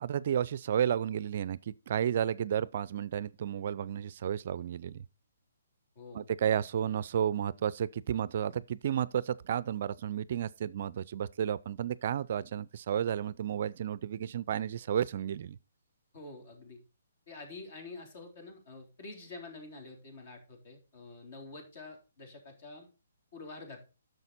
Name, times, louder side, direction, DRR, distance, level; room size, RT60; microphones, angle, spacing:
voice 1, 0.0-5.0 6.1-15.6, right 9 dB, 50° right, 0.4 m, -32 dB
voice 2, 6.0-6.3 16.1-16.8 17.3-22.9 23.3-23.8, left 3 dB, 50° left, 3.6 m, -47 dB
10.5 x 6.6 x 4.2 m
figure-of-eight pair, 135°, 0 cm